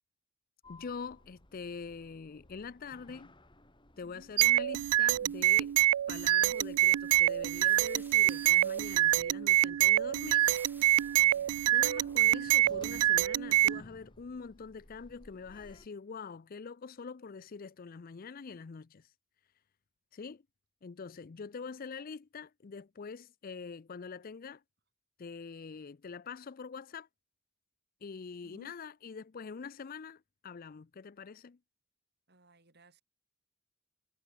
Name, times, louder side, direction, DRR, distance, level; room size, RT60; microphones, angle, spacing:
Sliding door, 0.6-15.9, left 1 dB, 20° left, 4.9 m, -59 dB
voice 1, 0.7-3.3 4.0-5.8 6.1-10.5 11.7-19.1 20.1-20.4 20.8-24.6 25.2-27.1 28.0-31.6, left 5 dB, 40° left, 0.4 m, -44 dB
sound 1, 4.4-13.8, right 14 dB, 85° right, 0.3 m, -26 dB
sound 2, 5.1-9.3 10.2-12.5, right 3 dB, 10° right, 2.2 m, -57 dB
voice 2, 11.2-11.7 28.4-28.8 32.3-33.0, right 1 dB, 50° right, 5.7 m, -59 dB
head